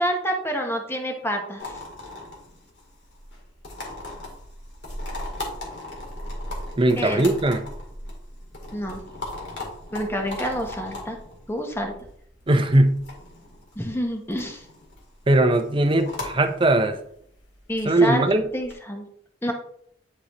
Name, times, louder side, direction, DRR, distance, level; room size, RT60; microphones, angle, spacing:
voice 1, 0.0-1.6 7.0-7.2 8.7-9.0 9.9-11.2 11.5-11.9 13.8-14.6 17.7-18.3 18.5-19.0 19.4-19.5, equal, 15° left, 3 dB, 0.9 m, -27 dB
sound 1, 1.6-18.7, left 1 dB, 70° left, 2.1 m, -38 dB
voice 2, 6.8-7.6 12.5-13.0 15.3-17.0 17.8-18.5, right 2 dB, 30° right, 6 dB, 0.6 m, -19 dB
9.9 x 3.9 x 3.0 m, 0.67 s
head